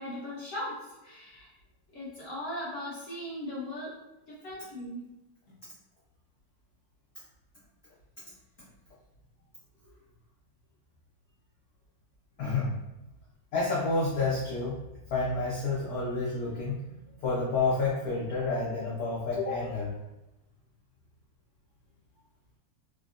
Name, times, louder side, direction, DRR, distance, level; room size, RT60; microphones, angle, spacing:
voice 1, 0.0-1.5 1.9-4.0 4.3-5.1, left 1 dB, 55° left, -8 dB, 0.9 m, -38 dB
voice 2, 12.4-12.8 13.5-14.8 15.1-19.9, left 3 dB, 85° left, -6 dB, 0.8 m, -29 dB
3.6 x 2.0 x 2.4 m, 0.96 s
omnidirectional pair, 2.3 m